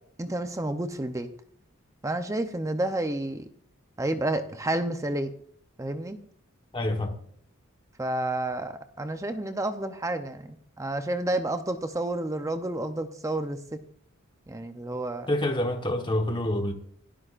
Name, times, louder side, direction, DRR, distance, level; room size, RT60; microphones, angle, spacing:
voice 1, 0.2-1.3 2.0-3.4 4.0-5.3 5.8-6.2 8.0-13.8 14.5-15.3, right 1 dB, 15° right, 0.7 m, -30 dB
voice 2, 6.7-7.1 15.3-16.7, left 1 dB, 25° left, 1.3 m, -27 dB
27.0 x 12.5 x 2.5 m
head